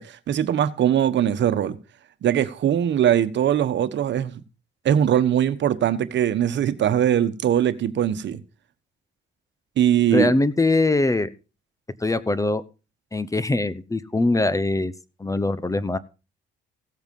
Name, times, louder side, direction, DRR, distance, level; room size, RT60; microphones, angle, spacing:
voice 1, 0.0-1.8 2.2-4.4 4.8-8.4 9.8-10.3, right 10 dB, 65° right, 1.3 m, -21 dB
voice 2, 10.1-11.3 12.0-12.6 13.1-14.9 15.2-16.0, left 2 dB, 15° left, 0.9 m, -22 dB
16.0 x 8.0 x 5.4 m
cardioid pair, 90°, 20 cm